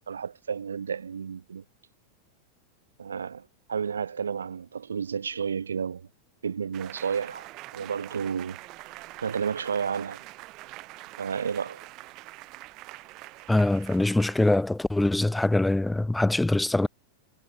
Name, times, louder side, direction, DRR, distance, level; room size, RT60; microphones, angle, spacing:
voice 1, 0.1-1.6 3.0-6.1 6.4-7.5 7.7-8.6 9.2-10.2 11.2-11.8, right 6 dB, 70° right, 1.8 m, -31 dB
sound 1, 6.7-14.6, right 20 dB, 40° right, 5.7 m, -45 dB
voice 2, 13.5-16.9, left 2 dB, 5° left, 1.3 m, -23 dB
figure-of-eight pair, 90°, 0 cm